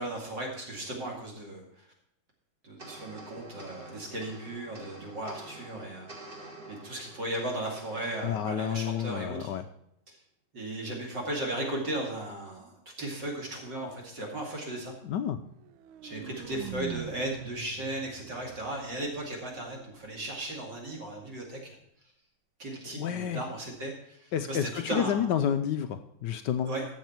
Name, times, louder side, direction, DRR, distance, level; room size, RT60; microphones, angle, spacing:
voice 1, 0.0-1.9 2.6-6.4 6.7-9.6 10.1-10.2 10.5-14.9 16.0-21.7 22.6-25.3 26.6-26.9, right 1 dB, 50° right, 0 dB, 3.0 m, -36 dB
sound 1, 2.8-9.4, right 2 dB, 25° right, 1.8 m, -49 dB
voice 2, 8.2-9.6 15.0-15.4 22.9-23.4 24.3-26.7, left 9 dB, 80° left, 8 dB, 1.0 m, -30 dB
sound 2, 15.6-19.6, right 12 dB, 75° right, 1.3 m, -43 dB
13.0 x 7.4 x 4.5 m, 0.74 s
omnidirectional pair, 2.4 m